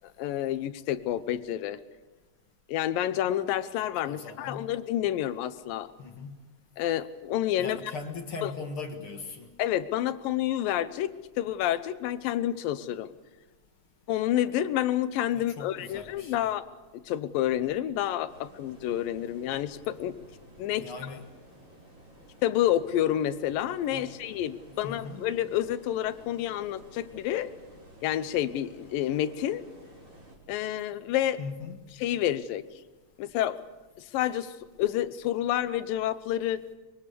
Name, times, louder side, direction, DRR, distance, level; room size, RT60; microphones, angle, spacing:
voice 1, 0.2-1.8 2.7-5.9 6.8-7.8 8.4-8.5 9.6-13.1 14.1-16.7 16.9-20.2 20.6-20.9 22.4-27.5 28.0-29.6 30.5-31.4 32.0-32.6 33.2-33.6 34.0-36.6, left 12 dB, 80° left, 13 dB, 2.5 m, -29 dB
voice 2, 4.0-4.7 6.0-6.4 7.6-9.5 15.4-16.4 20.8-21.2 23.9-24.1 24.7-25.2 31.4-31.8, left 4 dB, 45° left, 5 dB, 2.0 m, -39 dB
sound 1, 18.3-30.4, right 1 dB, 35° right, 4.4 m, -53 dB
25.0 x 23.0 x 6.9 m, 1.2 s
omnidirectional pair, 4.1 m